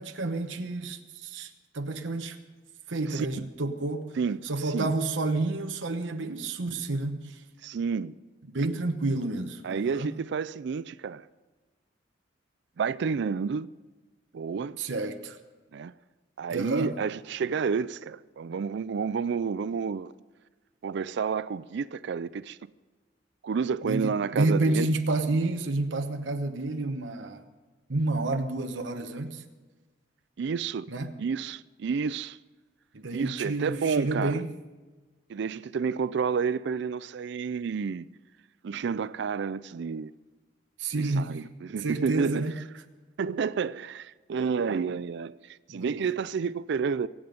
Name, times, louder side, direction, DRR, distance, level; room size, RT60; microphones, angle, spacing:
voice 1, 0.0-2.4 2.9-4.1 4.4-7.4 8.5-10.1 14.8-15.4 16.5-16.9 23.8-27.4 27.9-29.4 30.9-31.1 32.9-34.5 40.8-41.4 41.8-42.5 45.7-46.0, right 2 dB, 80° right, 1.1 m, -30 dB
voice 2, 3.1-3.5 4.2-4.9 7.6-8.1 9.6-11.3 12.8-13.7 14.3-14.8 15.7-15.9 16.4-20.1 20.8-22.6 23.4-24.9 30.4-30.9 31.2-32.4 33.1-34.4 35.3-38.1 38.6-40.1 40.9-42.6 43.2-47.1, right 5 dB, 65° right, 0.4 m, -30 dB
23.5 x 8.9 x 5.3 m
head